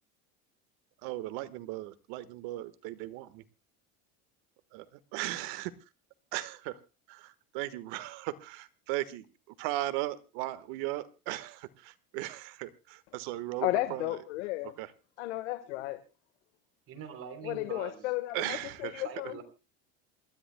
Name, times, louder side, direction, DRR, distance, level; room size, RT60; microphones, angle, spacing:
voice 1, 1.0-3.4 4.7-5.7 6.3-6.8 7.1-14.2 14.6-14.9 18.3-19.3, right 16 dB, 70° right, 13 dB, 1.5 m, -37 dB
voice 2, 13.6-14.7 15.2-16.0 17.4-18.6 18.8-19.4, left 17 dB, 90° left, 10 dB, 1.5 m, -33 dB
voice 3, 16.9-18.1 19.0-19.4, right 7 dB, 40° right, 8 dB, 3.6 m, -43 dB
27.5 x 13.5 x 2.2 m, 0.30 s
supercardioid pair, 120°, 34 cm